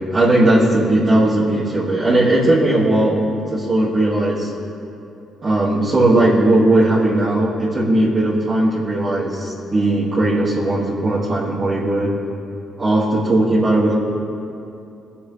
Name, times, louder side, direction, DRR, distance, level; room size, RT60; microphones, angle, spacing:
voice 1, 0.0-3.3 3.5-4.5 5.4-12.1 12.8-13.9, right 1 dB, 40° right, -9 dB, 2.3 m, -17 dB
25.0 x 8.4 x 3.4 m, 2.7 s
cardioid pair, 90°, 0 cm